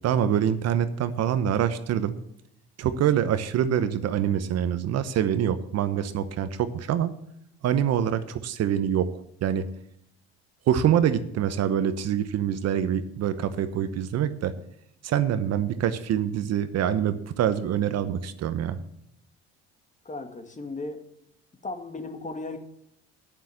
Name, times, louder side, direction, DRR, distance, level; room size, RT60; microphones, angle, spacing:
voice 1, 0.0-2.2 2.8-7.1 7.6-9.1 9.4-9.7 10.7-14.5 15.0-18.8, right 9 dB, 55° right, 12 dB, 1.0 m, -25 dB
voice 2, 20.1-21.0 21.6-22.6, left 3 dB, 25° left, 6 dB, 2.1 m, -35 dB
9.2 x 7.7 x 7.2 m, 0.75 s
supercardioid pair, 75°, 31 cm